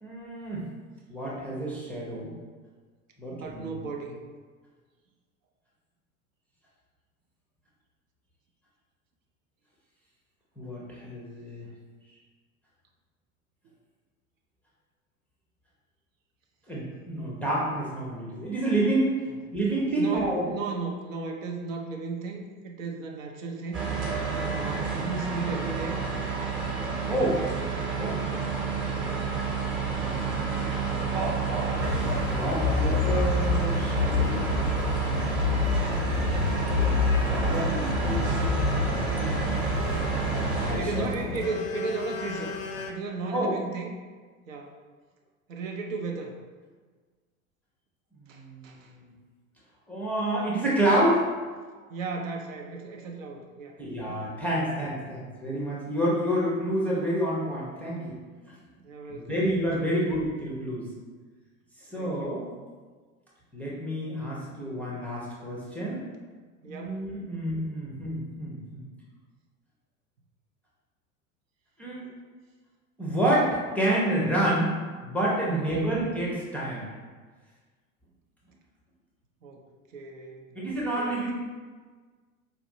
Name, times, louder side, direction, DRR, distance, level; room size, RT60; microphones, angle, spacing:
voice 1, 0.0-0.6 1.1-2.3 3.2-3.7 10.6-11.7 16.7-19.2 19.5-20.4 27.1-27.4 28.0-28.2 29.9-30.6 32.3-35.8 36.7-39.5 40.1-41.0 43.3-43.5 48.2-48.7 49.9-51.3 53.8-58.2 59.1-60.8 61.9-62.4 63.5-66.0 66.7-68.9 71.8-72.0 73.0-74.7 75.0-76.9 80.5-81.3, right 1 dB, 5° left, -5 dB, 0.5 m, -29 dB
voice 2, 3.3-4.2 20.0-23.8 24.5-26.0 27.0-27.3 28.3-28.5 40.5-42.5 42.9-43.9 44.5-44.7 45.5-46.4 48.3-48.9 51.9-53.7 58.8-59.4 59.8-60.1 61.9-62.4 66.6-67.0 75.5-75.9 79.4-79.6 79.9-80.6 80.9-81.3, right 4 dB, 70° right, 2 dB, 0.6 m, -35 dB
sound 1, 23.7-40.7, right 5 dB, 30° right, 0.8 m, -29 dB
sound 2, 31.8-42.9, left 6 dB, 75° left, 0.5 m, -29 dB
4.0 x 2.5 x 2.6 m, 1.4 s
figure-of-eight pair, 80°, 42 cm